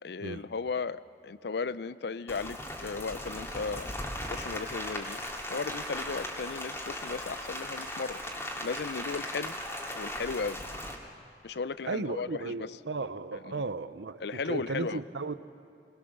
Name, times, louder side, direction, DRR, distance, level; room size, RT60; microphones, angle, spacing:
voice 1, 0.0-3.9 4.3-5.2 5.5-8.2 8.6-9.6 9.9-10.6 11.4-12.8 13.5-13.6 14.2-15.0, left 4 dB, 65° left, 15 dB, 0.6 m, -35 dB
Rain, 2.3-10.9, left 1 dB, 15° left, 2.3 m, -38 dB
voice 2, 11.9-15.3, right 3 dB, 85° right, 13 dB, 0.8 m, -35 dB
22.5 x 20.5 x 6.6 m, 2.6 s
head